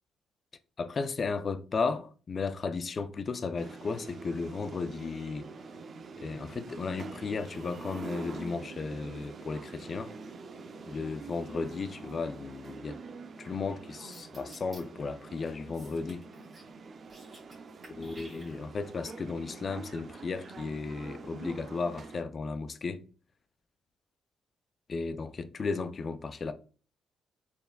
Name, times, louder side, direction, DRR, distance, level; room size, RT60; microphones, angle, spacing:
voice 1, 0.8-5.5 6.2-10.1 10.9-13.0 13.4-16.3 18.0-23.0 24.9-26.5, left 4 dB, 40° left, 0.4 m, -35 dB
sound 1, 3.6-22.2, right 4 dB, 45° right, 0.5 m, -45 dB
sound 2, 14.1-14.8 15.7-16.7 17.0-17.6 17.8-18.9, right 2 dB, 30° right, 2.0 m, -53 dB
4.3 x 3.3 x 2.3 m
cardioid pair, 90°, 0 cm